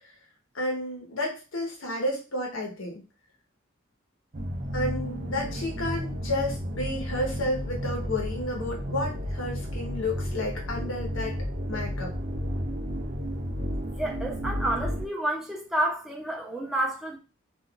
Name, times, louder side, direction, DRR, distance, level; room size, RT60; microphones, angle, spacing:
voice 1, 0.5-3.0 4.7-11.3 11.7-12.1, left 1 dB, 90° left, -1 dB, 1.0 m, -31 dB
sound 1, 4.3-15.1, equal, 40° right, 0.5 m, -32 dB
voice 2, 14.0-17.2, right 1 dB, ahead, -2 dB, 0.7 m, -29 dB
2.5 x 2.3 x 3.7 m, 0.32 s
head